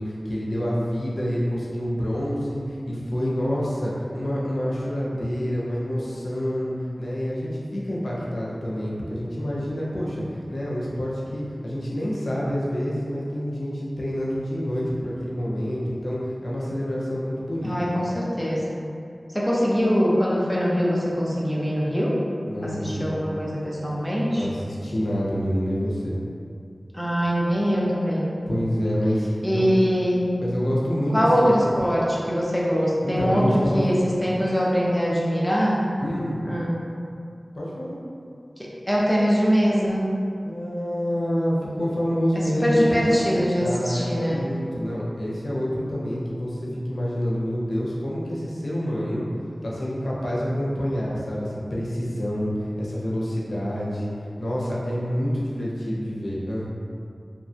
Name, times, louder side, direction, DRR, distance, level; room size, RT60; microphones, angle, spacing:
voice 1, 0.0-17.7 22.5-23.1 24.3-26.2 28.5-29.7 30.4-31.7 33.0-33.8 36.0-36.4 37.5-38.0 40.4-43.2 43.6-49.2 49.6-56.7, equal, 85° left, -6 dB, 0.5 m, -27 dB
voice 2, 17.6-18.8 19.3-22.1 22.6-24.5 26.9-28.3 29.4-30.3 31.1-35.8 36.5-36.8 38.6-40.1 42.3-44.4, equal, 5° left, -5 dB, 0.6 m, -23 dB
2.9 x 2.2 x 2.7 m, 2.4 s
wide cardioid pair, 65°, 0 cm